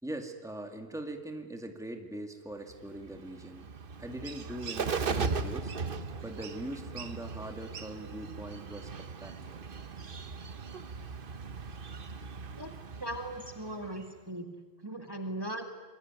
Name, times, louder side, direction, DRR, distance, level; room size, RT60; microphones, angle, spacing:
voice 1, 0.0-3.7 4.0-5.7 6.2-9.6, right 1 dB, 5° right, 4 dB, 2.2 m, -41 dB
Bird, 2.7-14.2, right 4 dB, 60° right, 1.3 m, -38 dB
voice 2, 13.0-14.5 14.8-15.6, right 1 dB, 20° right, 4 dB, 2.1 m, -38 dB
26.5 x 22.5 x 9.5 m, 1.3 s
omnidirectional pair, 1.1 m